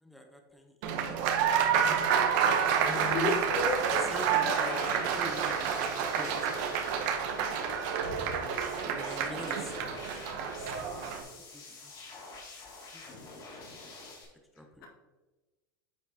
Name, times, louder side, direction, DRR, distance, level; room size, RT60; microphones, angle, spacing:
voice 1, 0.0-0.8 1.1-2.1 2.8-3.4 3.9-7.1 8.9-10.2 10.6-11.3 11.5-11.9 12.9-13.2 14.6-14.9, left 1 dB, ahead, 2 dB, 0.8 m, -44 dB
Applause, 0.8-11.2, right 7 dB, 60° right, 0.9 m, -29 dB
sound 1, 2.5-14.2, left 3 dB, 35° left, 2.3 m, -46 dB
voice 2, 3.1-4.0 4.3-5.0 8.0-8.4 10.6-10.9, left 3 dB, 80° left, -1 dB, 1.8 m, -34 dB
9.1 x 5.1 x 2.8 m, 1.2 s
supercardioid pair, 125°, 11 cm